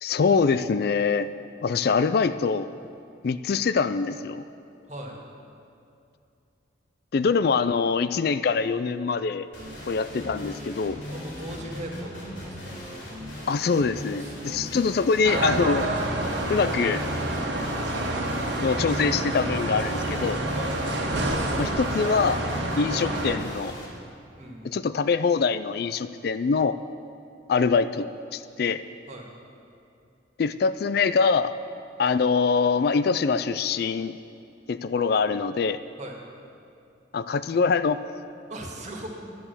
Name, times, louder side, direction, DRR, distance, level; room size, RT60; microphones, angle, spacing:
voice 1, 0.0-1.3 1.6-2.7 3.2-4.4 7.1-9.5 9.9-11.0 13.5-15.9 16.5-17.0 18.6-20.4 21.6-22.4 22.8-23.7 24.6-26.8 27.5-28.1 28.3-28.8 30.4-31.5 32.0-34.1 34.7-35.8 37.1-38.0, left 5 dB, 55° left, 13 dB, 0.4 m, -24 dB
voice 2, 4.9-5.2 11.1-12.8 14.2-15.0 20.5-20.7 24.4-24.8 29.1-29.3 36.0-36.1 38.5-39.1, right 1 dB, 40° right, 0 dB, 1.9 m, -39 dB
sound 1, 9.5-23.9, equal, 90° left, 3.7 m, -38 dB
sound 2, 15.2-23.4, right 1 dB, 80° right, 1.5 m, -28 dB
11.0 x 10.5 x 6.9 m, 2.6 s
head